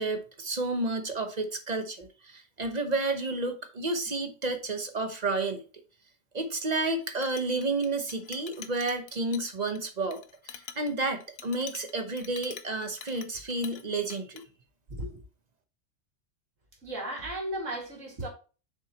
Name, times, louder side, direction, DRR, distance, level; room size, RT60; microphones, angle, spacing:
voice 1, 0.0-5.6 6.3-14.4, right 2 dB, 35° right, 0.9 m, -31 dB
Chink clink, 6.8-13.8 14.1-14.4, left 8 dB, 60° left, 0.8 m, -46 dB
voice 2, 16.8-18.3, right 1 dB, 70° right, 2.5 m, -35 dB
7.2 x 5.8 x 2.9 m
omnidirectional pair, 1.4 m